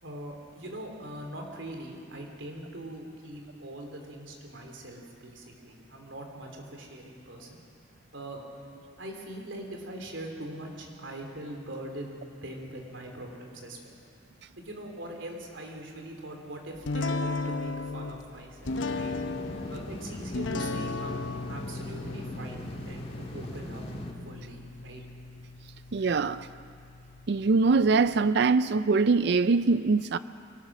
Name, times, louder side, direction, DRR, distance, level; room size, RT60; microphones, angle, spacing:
voice 1, 0.0-7.6 8.1-8.4 9.0-14.0 14.6-19.1 19.7-23.8 24.2-25.0, right 1 dB, 85° right, 3.3 m, -42 dB
sound 1, 16.8-28.3, left 3 dB, 80° left, 0.8 m, -36 dB
sound 2, 18.6-24.1, equal, 30° left, 2.1 m, -40 dB
voice 2, 25.9-26.5 27.3-30.2, right 4 dB, 60° right, 0.4 m, -23 dB
23.5 x 19.0 x 6.1 m
head